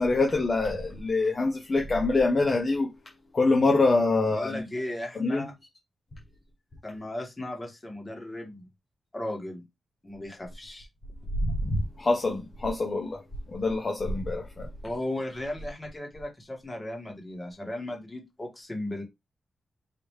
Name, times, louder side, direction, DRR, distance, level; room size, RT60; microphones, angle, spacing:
voice 1, 0.0-2.9 3.3-4.6 5.1-5.5 11.4-13.2 13.5-14.7, left 3 dB, 35° left, 0.9 m, -25 dB
voice 2, 4.3-5.5 6.8-8.7 9.1-9.6 10.0-10.9 14.8-19.0, left 1 dB, 20° left, 1.8 m, -36 dB
5.0 x 3.0 x 3.2 m
wide cardioid pair, 155°, 0 cm